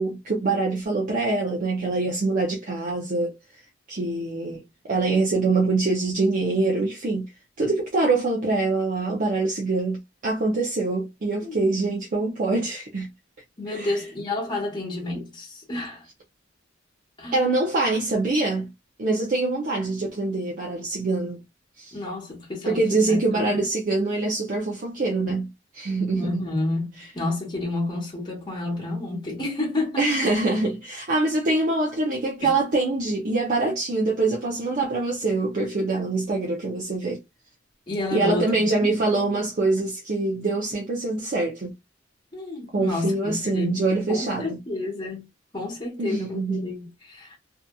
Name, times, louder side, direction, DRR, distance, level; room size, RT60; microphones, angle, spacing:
voice 1, 0.0-3.4 3.9-7.3 7.6-13.1 13.7-13.9 17.3-18.7 19.0-21.4 21.8-22.0 22.7-26.4 27.0-27.1 30.0-37.2 38.1-41.7 42.7-44.6 46.0-46.7, right 3 dB, 45° right, 0.5 m, -24 dB
voice 2, 13.6-16.0 17.2-17.3 21.9-23.6 26.1-30.1 32.4-32.5 37.9-38.7 42.3-43.7 44.1-45.3 45.5-47.4, left 2 dB, 25° left, 1.1 m, -30 dB
2.7 x 2.4 x 2.3 m
head